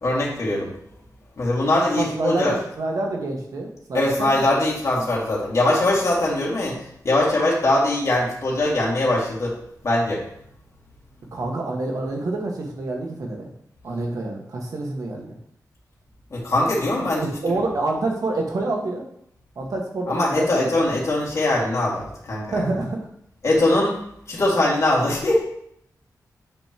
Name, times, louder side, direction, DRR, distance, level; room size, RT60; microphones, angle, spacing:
voice 1, 0.0-0.7 1.4-2.6 3.9-6.8 7.0-9.5 9.8-10.2 16.3-17.3 20.1-22.6 23.4-24.0 24.3-25.4, left 1 dB, 45° left, -5 dB, 2.2 m, -21 dB
voice 2, 2.0-4.1 4.5-4.6 5.0-5.1 11.3-13.5 13.8-15.3 17.4-19.1 19.5-20.7 22.5-23.0, right 2 dB, 60° right, 1 dB, 1.6 m, -27 dB
8.9 x 5.5 x 3.0 m, 0.72 s
wide cardioid pair, 135°, 7 cm